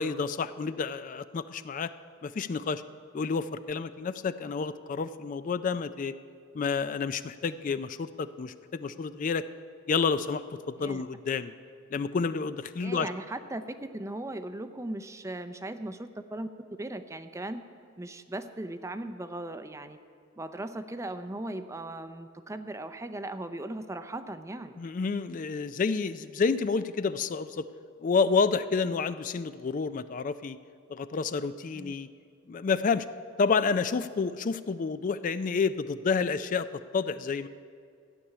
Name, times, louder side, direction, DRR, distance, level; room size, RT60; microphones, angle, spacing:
voice 1, 0.0-1.9 2.2-2.8 3.1-6.1 6.5-9.4 9.9-11.5 11.9-13.1 24.8-27.7 28.0-30.6 30.9-32.1 32.5-33.1 33.4-37.5, left 5 dB, 40° left, 13 dB, 0.4 m, -29 dB
voice 2, 12.8-17.7 18.0-20.0 20.4-24.8 31.7-31.9, right 1 dB, 15° right, 10 dB, 0.5 m, -38 dB
14.5 x 6.9 x 9.9 m, 2.3 s
head